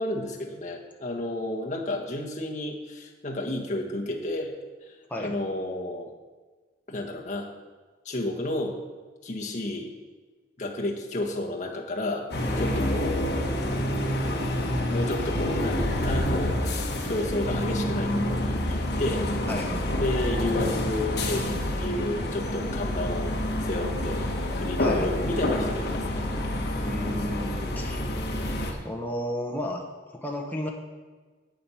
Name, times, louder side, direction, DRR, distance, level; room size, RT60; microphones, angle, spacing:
voice 1, 0.0-4.5 4.8-6.1 6.9-7.5 8.0-8.8 9.2-9.9 10.6-12.3 12.6-13.5 14.9-19.3 20.0-24.2 24.5-26.2 27.5-27.9, left 1 dB, 40° left, -1 dB, 1.4 m, -32 dB
sound 1, 12.3-28.7, left 1 dB, 55° left, 1.3 m, -28 dB
voice 2, 12.4-13.5 19.5-19.9 24.8-25.1 26.8-28.0 28.7-29.8 30.1-30.7, left 1 dB, 10° left, 0 dB, 1.0 m, -33 dB
8.3 x 7.7 x 5.7 m, 1.4 s
head